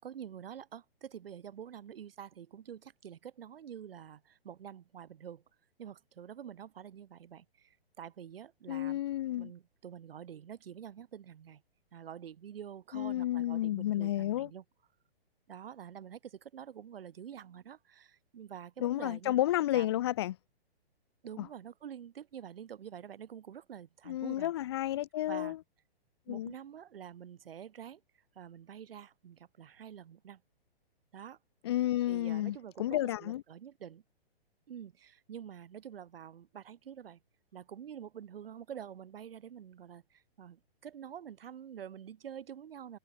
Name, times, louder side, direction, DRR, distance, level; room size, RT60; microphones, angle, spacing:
voice 1, 0.0-5.4 5.8-9.0 9.4-11.6 11.9-14.6 15.5-19.4 19.7-20.0 21.2-24.5 25.2-25.6 26.3-28.0 28.4-30.4 31.1-31.4 32.1-34.0 34.7-37.2 37.5-43.0, right 9 dB, 65° right, 5.5 m, -47 dB
voice 2, 8.7-9.5 12.9-14.5 18.8-20.4 21.4-21.5 24.1-25.6 26.3-26.5 31.6-33.4, left 14 dB, 25° left, 0.4 m, -31 dB
hypercardioid pair, 150°, 31 cm